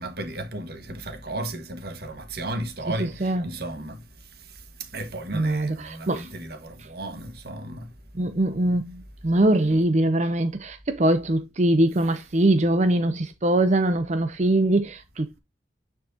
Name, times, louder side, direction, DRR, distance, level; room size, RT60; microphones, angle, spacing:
voice 1, 0.0-4.0 4.9-7.9, right 1 dB, 60° right, 1.6 m, -34 dB
voice 2, 3.0-3.5 5.3-6.3 8.1-15.4, right 1 dB, 40° right, 0.6 m, -22 dB
9.2 x 4.6 x 2.7 m
head